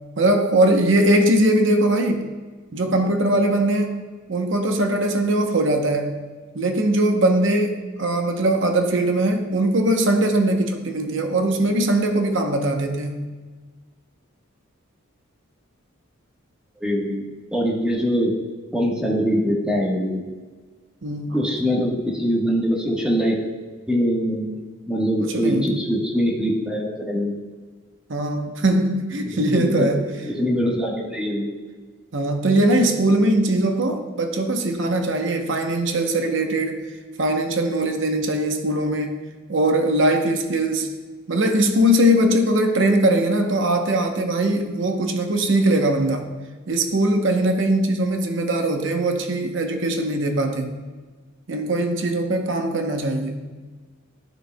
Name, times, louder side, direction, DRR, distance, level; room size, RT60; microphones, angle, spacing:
voice 1, 0.2-2.3 2.7-4.0 4.3-6.2 6.5-13.3 21.0-21.5 25.2-25.8 28.1-30.1 32.1-36.8 37.2-39.2 39.5-40.9 41.3-46.3 46.7-50.8 51.5-53.4, right 1 dB, 60° right, 5 dB, 0.8 m, -21 dB
voice 2, 16.8-18.3 18.7-20.2 21.3-23.4 23.9-24.5 24.9-27.4 29.3-29.9 30.2-31.5, equal, 5° right, -3 dB, 1.2 m, -23 dB
11.5 x 6.3 x 2.2 m, 1.4 s
head